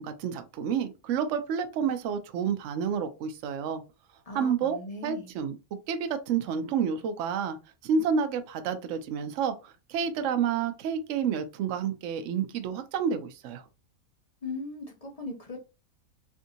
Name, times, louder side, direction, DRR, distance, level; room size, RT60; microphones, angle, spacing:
voice 1, 0.0-3.8 4.3-4.8 5.0-5.5 5.9-7.6 7.8-13.6, right 7 dB, 65° right, 0.8 m, -29 dB
voice 2, 4.3-5.3 14.4-15.7, left 3 dB, 50° left, 0.4 m, -38 dB
3.4 x 2.6 x 2.6 m
omnidirectional pair, 1.5 m